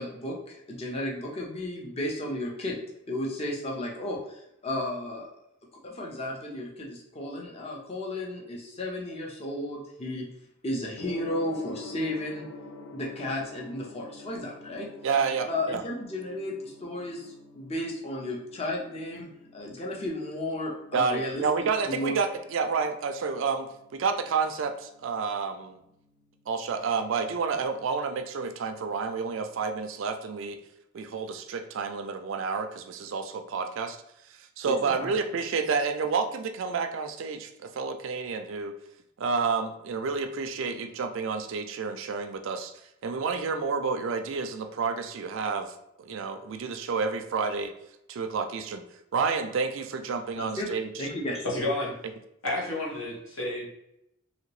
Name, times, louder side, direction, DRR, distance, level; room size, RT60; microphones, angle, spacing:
voice 1, 0.0-2.8 3.1-5.3 5.8-10.3 10.6-12.5 12.9-14.9 15.5-22.2 34.6-35.1 50.3-51.5, left 1 dB, 30° left, -2 dB, 0.5 m, -34 dB
Gong, 10.9-30.0, left 2 dB, 85° left, 0.5 m, -48 dB
voice 2, 15.0-15.8 20.9-25.8 26.5-30.6 30.9-34.0 34.3-38.7 39.2-42.7 43.0-47.7 48.1-48.8 49.1-50.9, right 5 dB, 65° right, 7 dB, 0.3 m, -30 dB
voice 3, 51.4-52.0 52.4-53.7, left 1 dB, 70° left, -4 dB, 1.1 m, -30 dB
2.9 x 2.8 x 3.0 m, 0.81 s
head